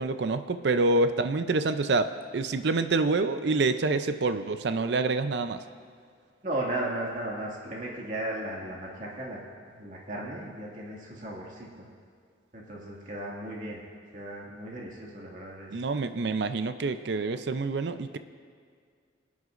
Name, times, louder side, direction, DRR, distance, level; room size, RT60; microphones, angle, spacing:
voice 1, 0.0-5.6 15.7-18.2, right 3 dB, 60° right, 10 dB, 0.5 m, -27 dB
voice 2, 6.4-9.4 9.7-11.7 12.5-13.8 14.1-15.7, right 1 dB, 45° right, -3 dB, 2.0 m, -35 dB
22.0 x 9.5 x 2.5 m, 2.1 s
head